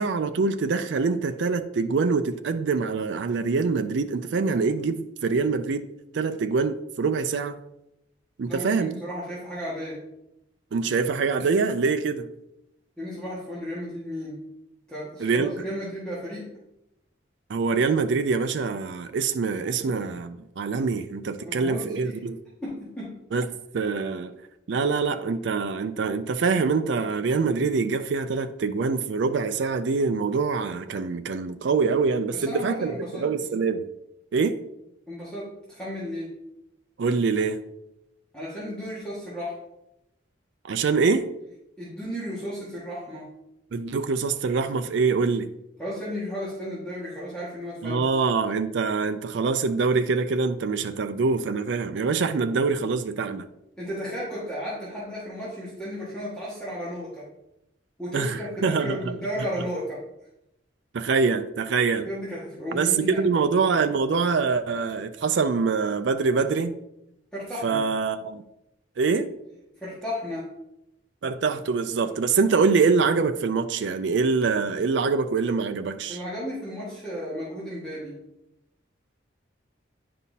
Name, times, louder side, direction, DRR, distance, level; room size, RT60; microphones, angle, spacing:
voice 1, 0.0-5.9 6.1-7.6 8.4-8.9 10.7-12.3 15.2-15.7 17.5-22.4 23.3-24.3 24.7-32.9 33.2-33.9 34.3-34.6 37.0-37.6 40.6-41.3 43.7-45.5 47.8-53.5 58.1-59.0 60.9-62.1 62.7-62.9 63.2-66.7 67.6-68.4 69.0-69.3 71.2-76.2, right 4 dB, 70° right, 0.4 m, -24 dB
voice 2, 8.5-10.0 13.0-14.4 14.9-16.5 19.8-19.9 21.4-22.2 22.6-23.2 32.3-33.3 35.1-36.3 38.3-39.6 41.8-43.3 45.8-48.1 53.8-57.3 58.0-60.0 62.0-63.2 67.3-67.8 69.7-70.5 76.1-78.2, equal, 5° left, 1.7 m, -34 dB
9.3 x 5.5 x 2.8 m
head